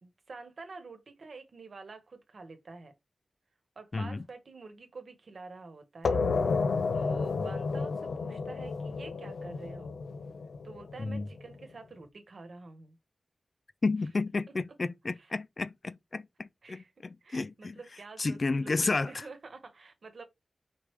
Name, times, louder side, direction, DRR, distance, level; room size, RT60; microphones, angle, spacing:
voice 1, 0.0-2.9 3.7-6.2 6.9-9.9 10.6-13.0 15.2-15.3 16.6-16.9 17.2-20.2, right 3 dB, 60° right, 1.2 m, -48 dB
voice 2, 3.9-4.2 7.4-7.5 11.0-11.3 13.8-17.8 18.2-19.2, left 3 dB, 40° left, 0.3 m, -32 dB
sound 1, 6.0-11.4, left 4 dB, 85° left, 0.6 m, -31 dB
5.0 x 3.3 x 3.1 m
wide cardioid pair, 115°, 0 cm